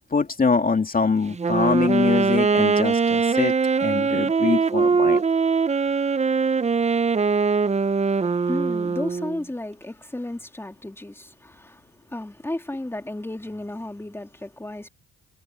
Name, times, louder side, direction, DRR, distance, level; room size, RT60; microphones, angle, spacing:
voice 1, 0.1-3.5 3.8-5.2, left 4 dB, 30° left, 2.5 m, -23 dB
Wind instrument woodwind instrument, 1.3-9.4, right 5 dB, 20° right, 0.7 m, -22 dB
voice 2, 7.7-14.9, left 1 dB, 10° left, 2.9 m, -34 dB
cardioid pair, 90°, 30 cm